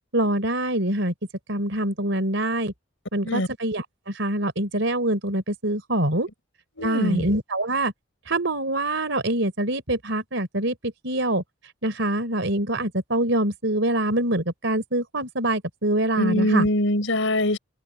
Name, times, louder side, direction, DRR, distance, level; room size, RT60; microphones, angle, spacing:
voice 1, 0.1-1.1 1.5-2.7 3.1-6.3 6.8-7.9 8.3-11.4 11.8-16.7, right 1 dB, 65° right, 3.5 m, -25 dB
voice 2, 6.8-7.3 16.2-17.6, left 1 dB, 75° left, 4.4 m, -23 dB
open air
head